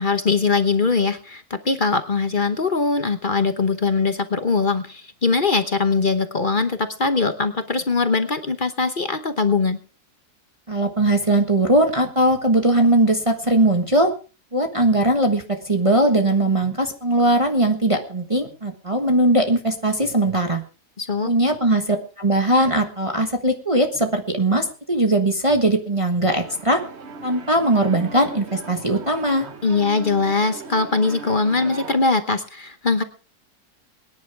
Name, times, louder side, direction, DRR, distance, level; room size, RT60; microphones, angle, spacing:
voice 1, 0.0-9.8 21.0-21.3 29.6-33.0, left 4 dB, 35° left, 9 dB, 1.0 m, -21 dB
voice 2, 10.7-14.1 14.5-20.6 21.2-26.8 27.2-29.5, right 1 dB, 20° right, 4 dB, 1.3 m, -20 dB
sound 1, 26.3-32.0, right 4 dB, 45° right, 1.3 m, -38 dB
23.0 x 10.5 x 3.4 m, 0.35 s
omnidirectional pair, 1.7 m